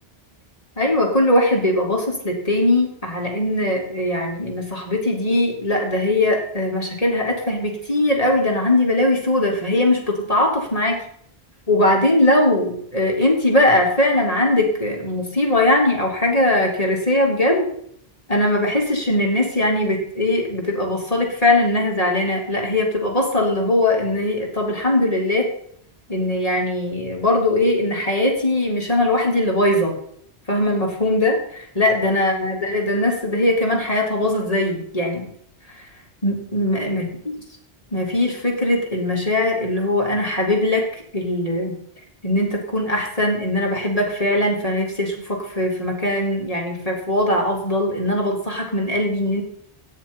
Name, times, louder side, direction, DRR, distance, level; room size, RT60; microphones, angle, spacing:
voice 1, 0.8-11.0 11.7-17.7 18.3-25.5 26.1-30.0 30.5-35.3 36.2-37.0 37.9-40.9 41.1-41.7 42.2-49.4, left 1 dB, 35° left, 0 dB, 4.2 m, -20 dB
18.5 x 10.0 x 5.6 m, 0.66 s
omnidirectional pair, 1.1 m